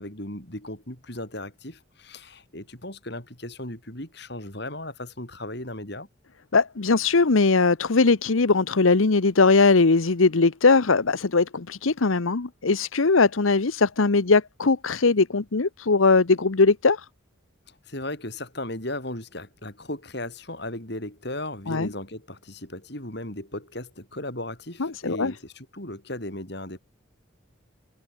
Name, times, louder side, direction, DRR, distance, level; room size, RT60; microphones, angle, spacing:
voice 1, 0.0-6.1 17.7-26.8, left 1 dB, 55° left, 7.1 m, -36 dB
voice 2, 6.5-17.0 21.7-21.9 24.8-25.3, left 4 dB, 80° left, 0.9 m, -20 dB
head